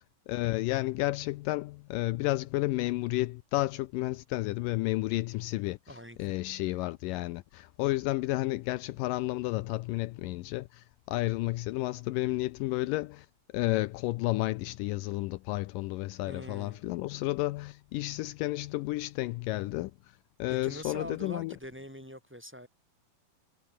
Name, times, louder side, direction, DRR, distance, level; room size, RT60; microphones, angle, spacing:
voice 1, 0.0-13.3 13.5-21.5, left 19 dB, 80° left, 2.2 m, -32 dB
voice 2, 5.9-6.3 16.3-16.8 20.5-22.7, equal, 5° right, 7.4 m, -43 dB
omnidirectional pair, 4.1 m